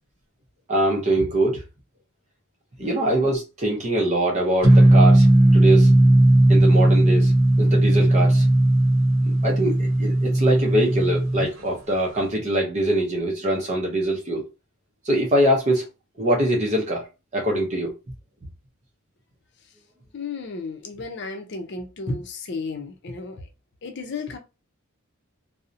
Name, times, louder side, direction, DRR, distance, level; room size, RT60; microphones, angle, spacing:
voice 1, 0.7-1.6 2.8-5.3 5.5-5.9 6.5-7.3 7.6-8.4 9.2-14.4 15.0-15.9 16.2-17.0 17.3-17.9, right 1 dB, 35° right, 0.5 m, -23 dB
sound 1, 4.6-11.5, right 1 dB, 80° right, 0.8 m, -16 dB
voice 2, 20.1-23.5 23.8-24.4, left 3 dB, 55° left, 0.5 m, -33 dB
2.6 x 2.0 x 2.5 m
head